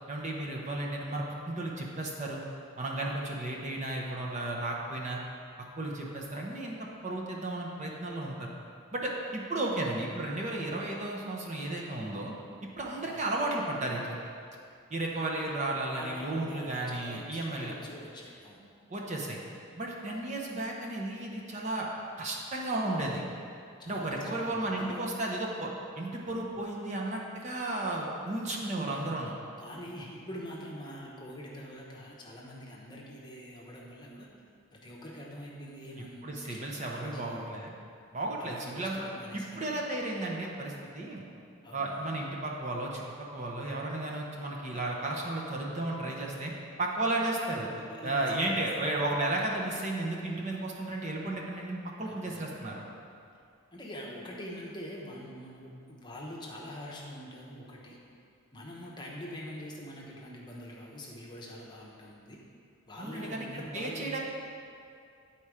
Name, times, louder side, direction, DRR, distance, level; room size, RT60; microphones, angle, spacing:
voice 1, 0.1-2.4 2.8-5.2 5.8-8.5 8.9-12.3 12.8-14.2 14.9-17.7 18.9-19.4 19.8-21.9 22.2-23.2 23.9-29.3 36.2-37.7 38.1-39.1 39.3-41.2 41.7-46.5 46.8-47.7 48.0-52.8 63.0-64.2, right 2 dB, 30° right, -2 dB, 0.7 m, -34 dB
voice 2, 16.0-18.7 23.8-25.0 28.7-29.2 29.6-34.3 34.7-37.5 38.4-39.7 41.6-42.0 48.0-48.6 52.0-52.7 53.7-58.0 58.5-62.4 62.9-64.2, equal, 20° left, -3 dB, 0.9 m, -44 dB
9.6 x 4.3 x 4.8 m, 2.4 s
head